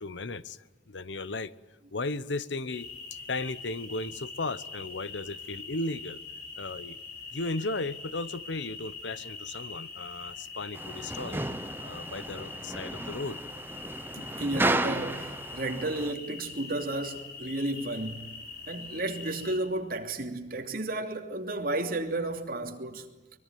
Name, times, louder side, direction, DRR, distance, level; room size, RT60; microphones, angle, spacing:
voice 1, 0.0-1.5 1.9-2.9 3.3-6.2 6.6-7.0 7.3-11.4 11.8-13.4 14.2-14.3, left 2 dB, 80° left, 1.0 m, -35 dB
sound 1, 2.7-19.6, left 4 dB, 55° left, 5.5 m, -43 dB
sound 2, 10.7-16.1, right 2 dB, 10° right, 1.0 m, -33 dB
voice 2, 14.3-18.3 18.7-23.1, right 2 dB, 55° right, 2.9 m, -33 dB
24.0 x 22.5 x 9.3 m
head